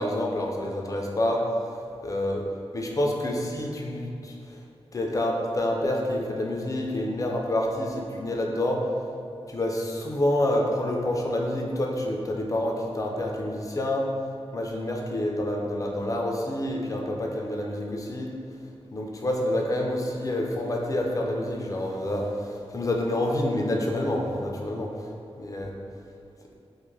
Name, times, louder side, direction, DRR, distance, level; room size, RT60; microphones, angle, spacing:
voice 1, 0.0-1.4 2.0-2.4 2.7-4.6 4.9-8.8 9.5-14.1 14.5-18.3 18.9-24.9 25.4-25.7, left 1 dB, 30° left, 0 dB, 0.4 m, -28 dB
2.3 x 2.1 x 3.1 m, 2.4 s
cardioid pair, 65°, 11 cm